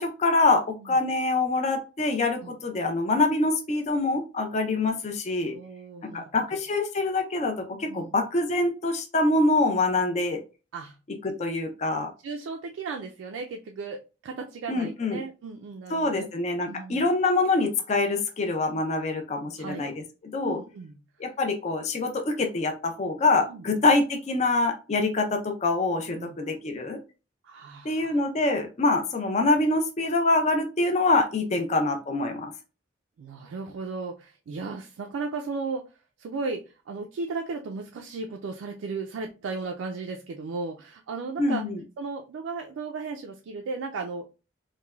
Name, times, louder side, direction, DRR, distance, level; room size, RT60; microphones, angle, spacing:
voice 1, 0.0-5.5 6.0-10.4 11.2-12.1 14.7-15.2 15.9-20.0 20.3-20.6 21.2-27.0 27.8-32.5 41.4-41.8, left 2 dB, 35° left, 5 dB, 0.4 m, -25 dB
voice 2, 5.5-6.6 7.9-8.1 10.7-11.0 12.2-16.3 16.7-17.1 19.6-19.9 20.4-20.9 23.5-23.6 26.2-26.4 27.4-28.2 33.2-35.9 36.2-41.6 42.0-44.3, right 4 dB, 90° right, 2 dB, 0.3 m, -35 dB
3.1 x 2.2 x 2.2 m, 0.31 s
head